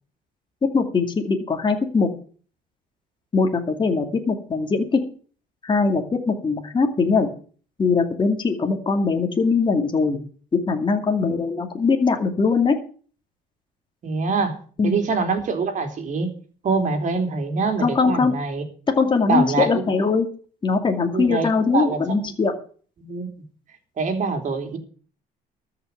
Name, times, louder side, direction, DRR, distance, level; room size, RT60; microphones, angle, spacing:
voice 1, 0.6-2.1 3.3-5.0 5.6-7.3 7.8-10.2 10.5-12.8 14.8-15.0 17.8-18.3 19.0-20.3 20.6-22.5, left 4 dB, 30° left, 4 dB, 2.4 m, -21 dB
voice 2, 14.0-14.5 14.8-16.3 16.6-18.6 19.3-19.8 21.1-22.0 23.0-23.3 24.0-24.8, right 4 dB, 50° right, 5 dB, 3.3 m, -24 dB
13.5 x 6.0 x 9.2 m, 0.43 s
cardioid pair, 110°, 17 cm